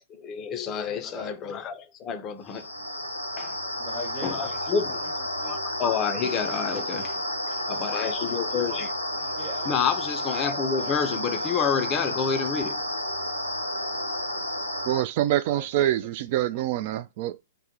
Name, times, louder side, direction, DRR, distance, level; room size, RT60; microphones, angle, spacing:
voice 1, 0.1-2.7 3.4-3.5 4.2-5.0 5.4-7.2 7.7-9.1 9.7-12.8, left 6 dB, 25° left, 0.5 m, -29 dB
voice 2, 1.0-1.4 3.7-5.6 8.1-9.7 10.7-11.1 14.2-14.5 15.5-15.9 16.5-16.6, equal, 15° right, 1.1 m, -42 dB
sound 1, 2.5-15.0, left 1 dB, 90° left, 0.5 m, -31 dB
voice 3, 14.8-17.4, right 13 dB, 45° right, 0.3 m, -25 dB
2.1 x 2.1 x 2.9 m
figure-of-eight pair, 105°, 0 cm